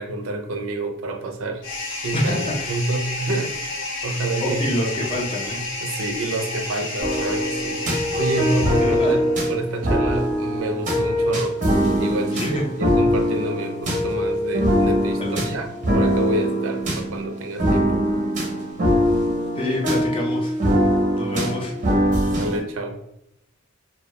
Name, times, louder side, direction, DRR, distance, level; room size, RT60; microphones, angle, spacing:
voice 1, 0.0-1.6 2.0-3.6 4.0-4.7 5.8-7.8 8.1-11.5 12.0-15.7 15.9-18.0 22.3-23.0, right 2 dB, 90° right, 5 dB, 0.4 m, -28 dB
sound 1, 1.6-9.4, left 2 dB, 65° left, 0.8 m, -31 dB
voice 2, 2.1-2.8 3.3-3.4 4.4-5.6 6.7-6.8 8.8-9.3 12.3-12.7 15.2-15.5 19.5-20.6 21.2-22.3, left 1 dB, 25° left, -1 dB, 0.5 m, -27 dB
sound 2, 7.0-22.6, equal, 40° right, 0.6 m, -22 dB
2.2 x 2.1 x 2.8 m, 0.79 s
head